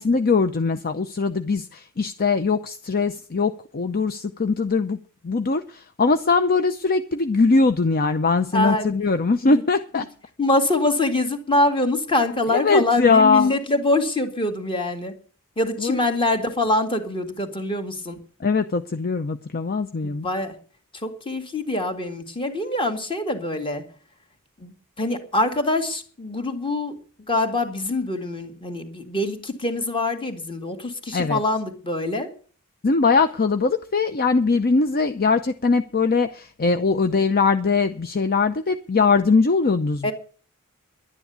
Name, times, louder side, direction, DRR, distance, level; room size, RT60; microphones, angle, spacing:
voice 1, 0.0-5.0 5.2-10.0 12.5-13.5 15.8-16.0 18.4-20.3 31.1-31.4 32.8-40.1, left 4 dB, 45° left, 10 dB, 0.6 m, -21 dB
voice 2, 8.5-8.9 9.4-9.6 10.4-15.1 15.6-18.2 20.0-20.6 20.9-23.8 24.6-32.3 40.0-40.1, left 2 dB, 25° left, 6 dB, 2.1 m, -24 dB
11.5 x 9.8 x 8.2 m, 0.43 s
head